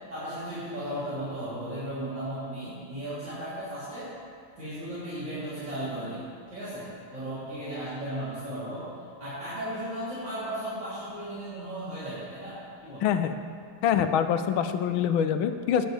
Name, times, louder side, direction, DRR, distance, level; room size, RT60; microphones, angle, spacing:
voice 1, 0.1-4.1 4.6-6.2 6.5-8.9 9.2-13.1, right 1 dB, 60° right, -14 dB, 4.2 m, -35 dB
voice 2, 13.0-13.4 13.8-15.9, left 8 dB, 85° left, 9 dB, 1.5 m, -25 dB
18.0 x 10.5 x 3.5 m, 2.3 s
omnidirectional pair, 2.2 m